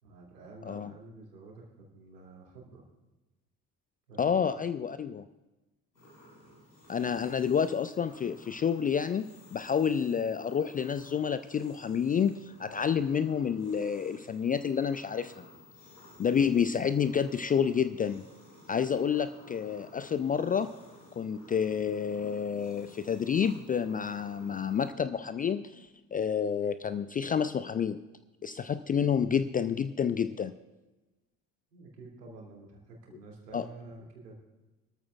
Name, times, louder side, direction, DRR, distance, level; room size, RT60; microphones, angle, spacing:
voice 1, 0.0-2.8 4.1-4.2 4.5-4.6 31.7-34.4, right 2 dB, 75° right, -1 dB, 2.7 m, -49 dB
voice 2, 4.2-5.2 6.9-15.5 16.2-18.3 18.7-20.7 21.2-28.0 28.4-30.5 33.5-33.6, left 7 dB, 20° left, 12 dB, 0.3 m, -29 dB
sound 1, 5.9-24.9, left 1 dB, 85° left, 5.8 m, -55 dB
22.5 x 13.5 x 2.4 m, 1.1 s
figure-of-eight pair, 45°, 48 cm